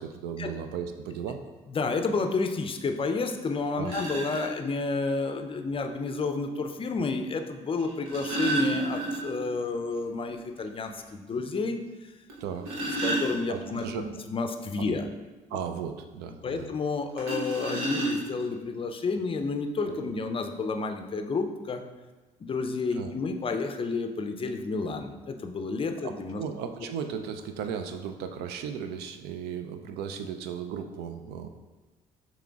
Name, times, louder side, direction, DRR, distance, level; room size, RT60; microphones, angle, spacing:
voice 1, 0.0-1.4 3.8-3.9 12.4-12.7 13.5-14.1 14.8-14.9 15.5-16.7 22.9-23.1 26.0-31.5, right 7 dB, 65° right, 7 dB, 0.4 m, -36 dB
voice 2, 1.7-11.8 13.0-15.1 16.4-21.8 22.4-26.4, left 4 dB, 30° left, 6 dB, 0.5 m, -30 dB
sound 1, 3.2-3.3 3.8-4.5 5.9-6.0 7.8-9.5 9.9-10.0 10.4-10.5 11.0-11.1 12.3-13.8 17.2-18.5 19.4-19.5 19.9-20.1, right 2 dB, 80° right, 0.8 m, -31 dB
6.7 x 3.0 x 2.4 m, 1.2 s
hypercardioid pair, 50°, 18 cm